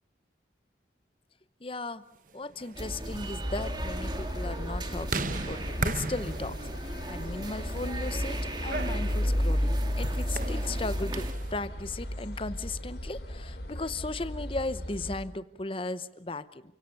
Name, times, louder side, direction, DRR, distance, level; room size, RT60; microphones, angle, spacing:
voice 1, 1.6-2.0 2.3-16.6, left 2 dB, 30° left, 14 dB, 0.9 m, -36 dB
sound 1, 2.4-11.5, right 3 dB, 45° right, 1.1 m, -39 dB
sound 2, 2.7-11.3, right 1 dB, 25° right, 2.0 m, -38 dB
sound 3, 3.4-15.2, equal, 65° left, 3.2 m, -33 dB
29.5 x 17.5 x 7.0 m, 0.85 s
head